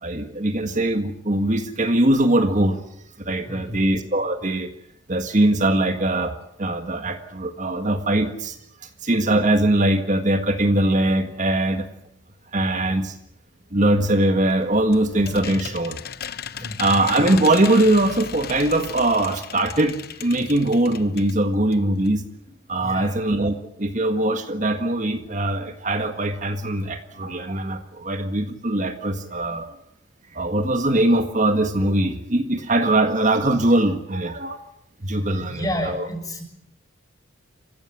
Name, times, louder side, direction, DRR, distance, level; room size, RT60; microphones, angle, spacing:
voice 1, 0.0-2.8 3.2-4.7 5.1-6.3 6.6-8.6 9.0-11.9 12.5-13.1 13.7-16.0 16.8-22.2 22.7-29.7 30.3-34.6 35.0-36.1, right 1 dB, 40° right, 7 dB, 1.7 m, -21 dB
voice 2, 3.5-3.9 15.4-15.6 16.6-17.0 22.8-23.2 35.1-36.4, equal, 15° left, 4 dB, 6.6 m, -31 dB
sound 1, 14.5-21.4 21.7-21.8 22.0-22.1, left 8 dB, 50° left, 0.9 m, -36 dB
28.0 x 15.5 x 10.0 m, 0.78 s
head